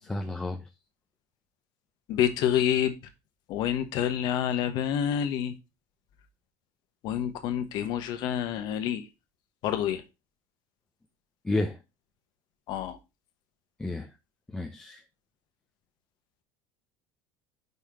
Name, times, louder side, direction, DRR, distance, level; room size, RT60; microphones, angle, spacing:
voice 1, 0.0-0.6 11.4-11.8 13.8-14.1 14.5-15.0, left 2 dB, 10° left, 0.6 m, -31 dB
voice 2, 2.1-2.9 3.5-5.5 7.0-9.0 9.6-10.0 12.7-13.0, left 10 dB, 50° left, 1.1 m, -27 dB
5.3 x 4.3 x 4.9 m
cardioid pair, 145°, 9 cm